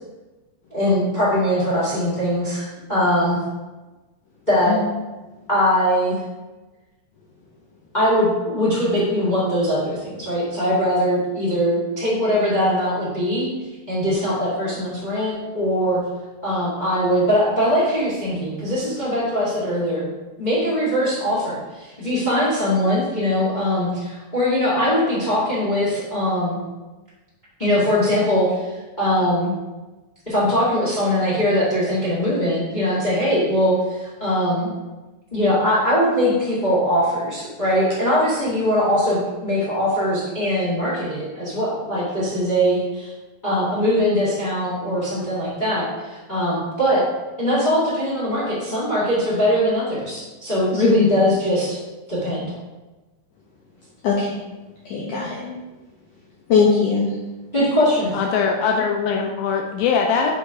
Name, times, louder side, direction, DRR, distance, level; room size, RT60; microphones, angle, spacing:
voice 1, 0.7-2.6 2.9-3.4 4.5-4.8 5.5-6.1 7.9-13.5 13.9-16.0 16.4-20.1 20.4-26.6 27.6-29.5 30.2-34.7 35.3-43.1 43.4-47.0 47.4-51.8 52.1-52.5 57.5-58.2, equal, 50° left, -8 dB, 0.5 m, -21 dB
voice 2, 54.0-54.4 54.9-55.6 56.5-57.1, left 5 dB, 70° left, -5 dB, 2.0 m, -20 dB
voice 3, 58.1-60.3, left 6 dB, 90° left, 2 dB, 2.0 m, -21 dB
5.7 x 5.4 x 4.9 m, 1.2 s
omnidirectional pair, 4.9 m